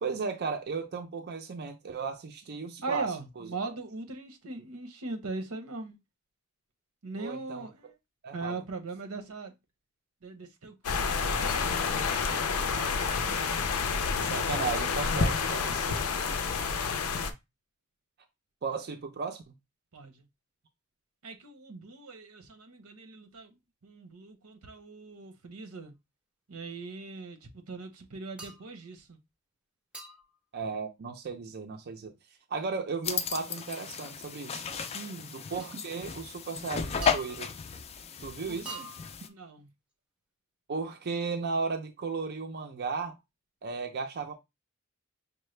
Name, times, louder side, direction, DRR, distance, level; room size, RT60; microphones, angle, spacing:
voice 1, 0.0-3.1 3.4-3.5 7.2-7.7 8.2-8.6 13.3-13.6 14.2-16.0 18.6-19.4 30.5-32.1 32.5-34.6 35.3-37.5 38.2-38.9 40.7-43.1 43.6-44.3, right 4 dB, 50° right, 0.5 m, -35 dB
voice 2, 2.8-6.0 7.0-7.9 8.3-9.5 10.2-11.6 12.7-13.2 14.7-14.9 16.6-17.3 19.9-20.2 21.2-25.9 26.5-29.2 34.9-35.4 38.5-38.8 39.3-39.7, right 3 dB, 90° right, 0.9 m, -40 dB
sound 1, 10.8-17.3, left 5 dB, 85° left, 0.5 m, -29 dB
sound 2, 28.4-28.7 29.9-30.4 33.6-33.7 34.8-35.0 35.6-35.8 37.0-37.7 38.7-39.3, right 2 dB, 5° right, 0.6 m, -45 dB
sound 3, 33.0-39.3, left 6 dB, 30° left, 0.3 m, -34 dB
5.4 x 2.1 x 3.2 m
head